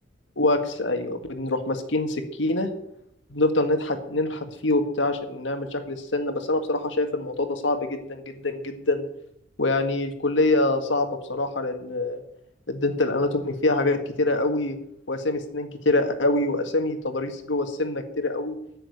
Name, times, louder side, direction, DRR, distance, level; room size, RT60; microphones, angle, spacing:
voice 1, 0.4-2.7 3.3-9.1 9.6-12.2 12.7-14.8 15.1-18.6, left 2 dB, 75° left, 6 dB, 1.9 m, -25 dB
9.9 x 8.8 x 9.9 m, 0.75 s
head